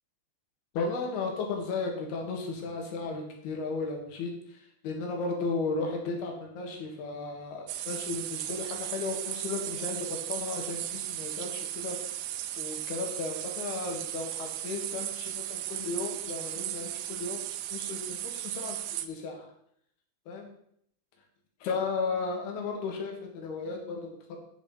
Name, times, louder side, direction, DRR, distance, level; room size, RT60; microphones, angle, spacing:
voice 1, 0.8-12.2 12.6-17.4 17.7-19.5 20.3-20.5 21.6-24.4, left 4 dB, 70° left, 2 dB, 3.5 m, -35 dB
sound 1, 7.7-19.1, right 12 dB, 85° right, 2.0 m, -36 dB
9.6 x 7.1 x 4.2 m, 0.69 s
omnidirectional pair, 4.9 m